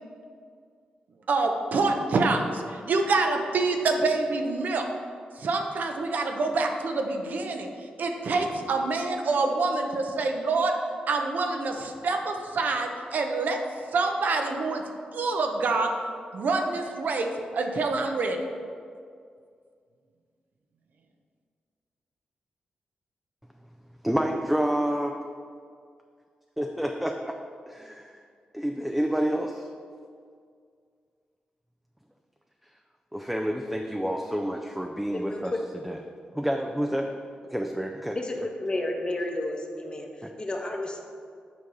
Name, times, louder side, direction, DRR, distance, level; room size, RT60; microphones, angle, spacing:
voice 1, 1.3-4.9 5.4-10.7 11.1-13.6 13.9-14.8 15.1-15.9 16.3-18.4, right 3 dB, 70° right, 3 dB, 0.7 m, -26 dB
voice 2, 24.0-25.1 26.6-27.4 27.7-28.2 28.5-29.7 33.1-35.5 35.8-36.0 36.3-37.1 37.5-38.5 40.2-40.3, equal, 5° right, 3 dB, 0.4 m, -28 dB
voice 3, 35.1-35.6 38.1-40.1 40.4-41.0, left 2 dB, 30° left, 2 dB, 1.0 m, -31 dB
7.1 x 4.6 x 4.2 m, 2.2 s
cardioid pair, 60°, 3 cm